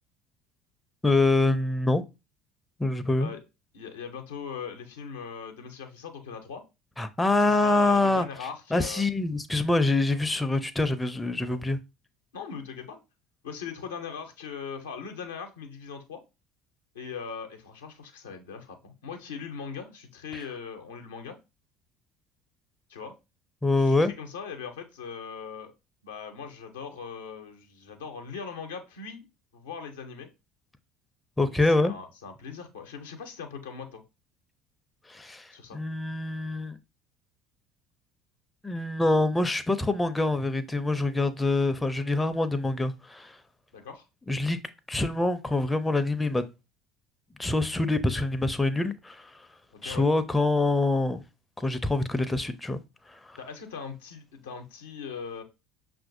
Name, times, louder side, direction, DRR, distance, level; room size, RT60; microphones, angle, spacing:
voice 1, 1.0-2.0 2.8-3.3 7.0-8.3 8.7-11.8 20.3-20.4 23.6-24.1 31.4-31.9 35.1-36.8 38.6-43.4 44.3-44.6 44.9-46.4 47.4-49.5 49.8-51.2 51.6-52.8 53.1-53.4, left 2 dB, 10° left, 0.4 m, -25 dB
voice 2, 3.7-6.6 7.4-9.0 12.3-13.0 13.4-16.2 16.9-21.4 22.9-23.2 23.7-25.7 26.0-29.3 29.5-30.3 31.5-34.0 35.5-35.8 43.7-44.1 49.7-50.1 53.4-55.4, left 6 dB, 80° left, 0.6 m, -40 dB
5.6 x 2.5 x 2.6 m
hypercardioid pair, 65°, 0 cm